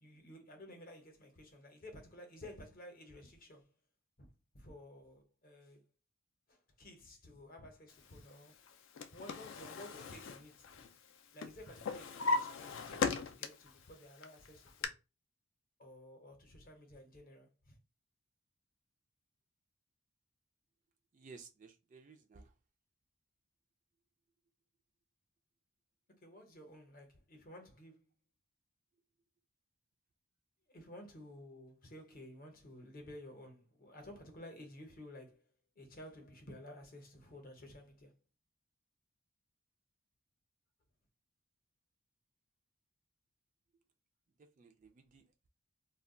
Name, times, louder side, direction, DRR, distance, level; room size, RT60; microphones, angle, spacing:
voice 1, 0.0-3.7 4.2-5.8 6.5-8.6 9.1-10.8 11.3-14.9 15.8-17.8 26.1-28.1 30.7-35.4 35.8-38.2, left 1 dB, 40° left, 0.7 m, -53 dB
Drawer open or close, 8.7-11.1 11.4-13.7 14.2-14.9, left 4 dB, 60° left, 0.3 m, -38 dB
voice 2, 21.1-22.5 44.6-45.3, right 4 dB, 35° right, 0.3 m, -56 dB
2.2 x 2.2 x 3.6 m
head